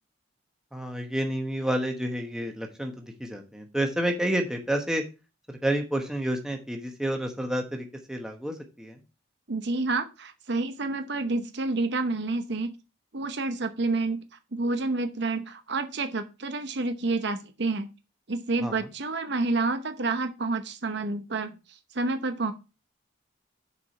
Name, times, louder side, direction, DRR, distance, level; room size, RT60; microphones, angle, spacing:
voice 1, 0.7-5.0 5.5-9.0 18.6-18.7, right 1 dB, 5° right, 3 dB, 1.1 m, -29 dB
voice 2, 9.5-12.7 13.1-14.2 14.5-17.9 18.3-22.5, right 3 dB, 55° right, 8 dB, 0.8 m, -29 dB
7.0 x 4.9 x 5.7 m, 0.30 s
head